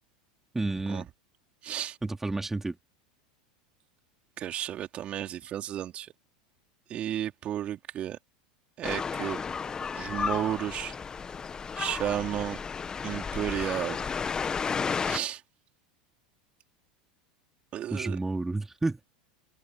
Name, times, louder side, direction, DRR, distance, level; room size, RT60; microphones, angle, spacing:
voice 1, 0.5-1.1 2.0-2.8 17.9-19.0, right 2 dB, 10° right, 3.0 m, -30 dB
voice 2, 1.6-2.0 4.4-6.1 6.9-8.2 8.8-9.4 9.9-10.9 11.8-12.6 13.0-14.0 15.1-15.4 17.7-18.2, right 11 dB, 40° right, 3.8 m, -33 dB
sound 1, 8.8-15.2, left 6 dB, 20° left, 1.7 m, -33 dB
hypercardioid pair, 85°, 3 cm